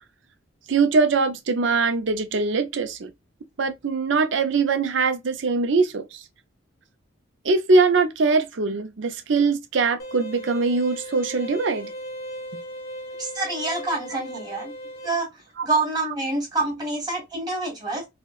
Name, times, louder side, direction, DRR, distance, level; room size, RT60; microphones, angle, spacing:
voice 1, 0.7-3.1 3.6-6.2 7.4-11.9 14.1-14.2 15.6-15.7, right 4 dB, 65° right, 0.5 m, -22 dB
sound 1, 10.0-15.1, equal, 50° left, 0.7 m, -37 dB
voice 2, 13.2-14.7 15.0-15.3 15.6-18.0, right 2 dB, 20° right, 1.4 m, -26 dB
3.9 x 2.1 x 2.4 m
head